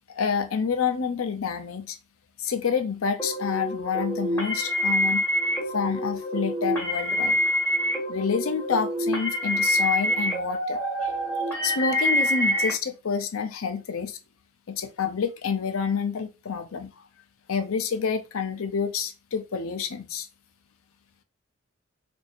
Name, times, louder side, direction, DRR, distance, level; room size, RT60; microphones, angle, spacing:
voice 1, 0.1-2.0 2.4-5.2 5.7-7.4 8.1-11.1 11.6-14.2 14.7-16.9 17.5-20.3, left 6 dB, 80° left, 0.6 m, -28 dB
sound 1, 3.2-12.7, equal, 10° left, 1.6 m, -26 dB
4.5 x 2.6 x 2.5 m
head